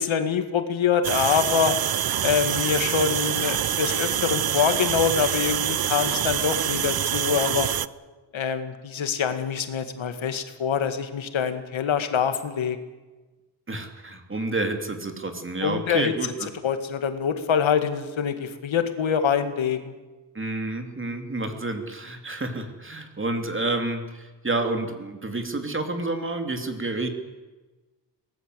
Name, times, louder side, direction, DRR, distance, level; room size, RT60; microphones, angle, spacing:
voice 1, 0.0-1.8 2.2-7.7 8.3-12.8 15.6-16.1 16.6-19.9, left 7 dB, 80° left, 8 dB, 2.1 m, -25 dB
sound 1, 1.0-7.9, right 10 dB, 50° right, 0.7 m, -26 dB
voice 2, 13.7-16.3 20.3-27.1, right 2 dB, 25° right, 5 dB, 3.1 m, -29 dB
23.0 x 18.5 x 8.1 m, 1.2 s
wide cardioid pair, 125°, 46 cm